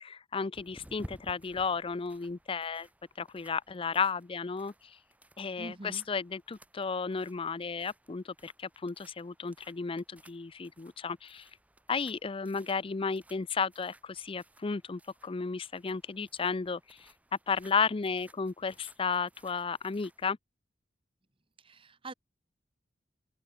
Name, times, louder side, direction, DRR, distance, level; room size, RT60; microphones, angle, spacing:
voice 1, 0.0-2.9 3.2-5.0 5.4-11.5 11.9-17.1 17.5-20.4, left 5 dB, 30° left, 0.5 m, -33 dB
sound 1, 0.5-20.3, equal, 10° right, 2.3 m, -57 dB
voice 2, 5.6-6.0 21.7-22.1, right 2 dB, 30° right, 1.2 m, -44 dB
open air
head